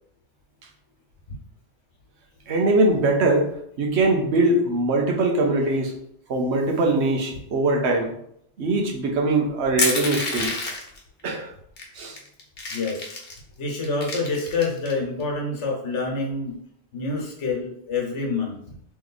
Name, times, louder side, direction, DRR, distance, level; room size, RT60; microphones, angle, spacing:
voice 1, 2.5-5.9 6.3-8.1 8.6-10.5 11.2-11.5 11.9-12.2, right 2 dB, 70° right, 1 dB, 1.1 m, -22 dB
Crushing, 9.8-11.0 11.8-11.9 12.2-13.4 13.8-14.9, left 3 dB, 60° left, 1.0 m, -27 dB
voice 2, 12.7-13.1 13.6-16.6 16.9-18.6, left 3 dB, 85° left, -1 dB, 1.3 m, -27 dB
3.2 x 3.1 x 3.9 m, 0.69 s
omnidirectional pair, 1.2 m